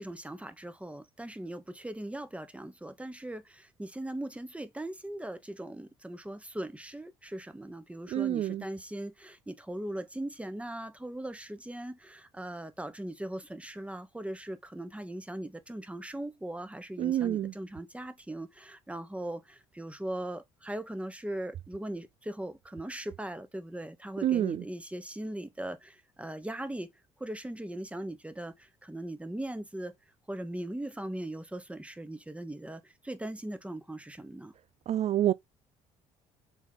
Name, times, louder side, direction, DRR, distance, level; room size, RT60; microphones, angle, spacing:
voice 1, 0.0-26.9 27.2-29.9 30.3-34.5, right 1 dB, 10° right, 1.3 m, -39 dB
voice 2, 8.1-8.6 17.0-17.5 24.2-24.6 34.9-35.3, right 12 dB, 45° right, 0.4 m, -28 dB
7.1 x 3.6 x 4.0 m
hypercardioid pair, 60°, 15 cm